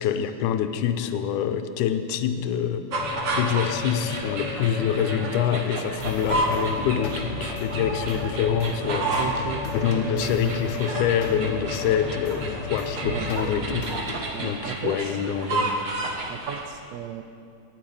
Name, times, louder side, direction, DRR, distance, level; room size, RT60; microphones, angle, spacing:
voice 1, 0.0-9.2 9.7-13.9 14.4-15.8, left 8 dB, 90° left, 9 dB, 2.1 m, -26 dB
sound 1, 2.9-5.8 6.0-13.4, left 7 dB, 70° left, 1.4 m, -35 dB
sound 2, 2.9-16.6, right 2 dB, 55° right, 1.3 m, -31 dB
sound 3, 6.0-14.4, left 1 dB, 55° left, 1.1 m, -36 dB
voice 2, 9.2-9.6 9.9-10.6 13.0-13.3 14.3-15.2 16.3-17.2, right 11 dB, 80° right, 7 dB, 1.5 m, -35 dB
10.0 x 8.9 x 8.6 m, 2.5 s
omnidirectional pair, 3.5 m